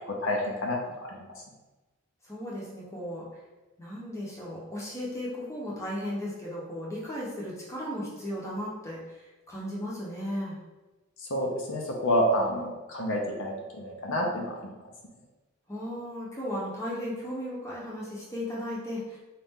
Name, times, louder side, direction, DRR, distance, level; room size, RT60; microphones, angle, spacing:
voice 1, 0.1-1.3 11.2-14.7, equal, 60° left, -1 dB, 0.6 m, -29 dB
voice 2, 2.2-3.2 3.8-10.6 15.7-19.2, equal, 15° left, -5 dB, 0.8 m, -35 dB
4.1 x 2.4 x 3.5 m, 1.1 s
head